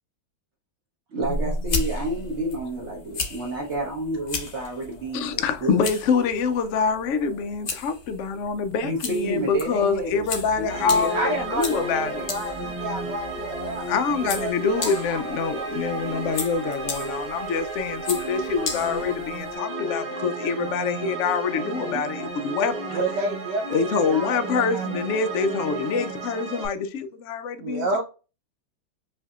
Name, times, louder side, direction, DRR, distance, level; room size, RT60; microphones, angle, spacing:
voice 1, 1.1-5.3 5.6-5.9 8.8-10.2 10.5-12.1, right 1 dB, 45° right, 1.1 m, -30 dB
sound 1, 1.2-19.6, left 3 dB, 50° left, 0.9 m, -35 dB
voice 2, 5.1-12.3 13.9-22.8 23.7-28.0, left 5 dB, 75° left, 0.6 m, -25 dB
sound 2, 10.7-26.7, right 2 dB, 30° right, 2.0 m, -33 dB
voice 3, 10.9-13.9 14.4-14.5 14.8-15.2 15.5-15.7 21.6-22.0 22.9-24.4 24.7-24.9 27.6-28.0, right 2 dB, 80° right, 1.3 m, -30 dB
5.4 x 2.7 x 2.3 m
omnidirectional pair, 1.9 m